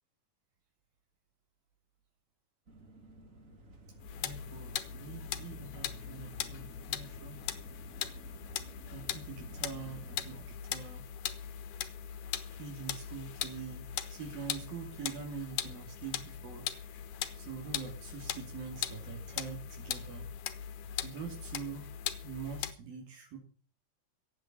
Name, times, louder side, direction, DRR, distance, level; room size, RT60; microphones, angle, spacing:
sound 1, 2.7-10.4, equal, 25° right, 2.0 m, -52 dB
sound 2, 4.0-22.7, left 10 dB, 70° left, 2.5 m, -40 dB
voice 1, 4.2-7.4 8.9-11.1 12.6-17.0 17.4-20.3 21.0-21.9 22.2-23.4, right 6 dB, 70° right, 1 dB, 4.6 m, -44 dB
16.0 x 8.9 x 7.6 m, 0.41 s
omnidirectional pair, 4.2 m